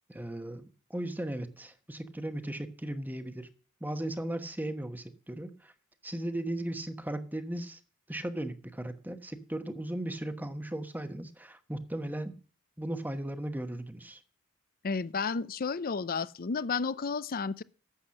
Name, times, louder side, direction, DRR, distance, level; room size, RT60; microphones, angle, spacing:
voice 1, 0.1-3.5 3.8-5.7 6.0-7.8 8.1-12.4 12.8-14.2, right 1 dB, 10° right, 1.0 m, -37 dB
voice 2, 14.8-17.6, left 5 dB, 45° left, 0.6 m, -32 dB
11.5 x 7.9 x 6.4 m
head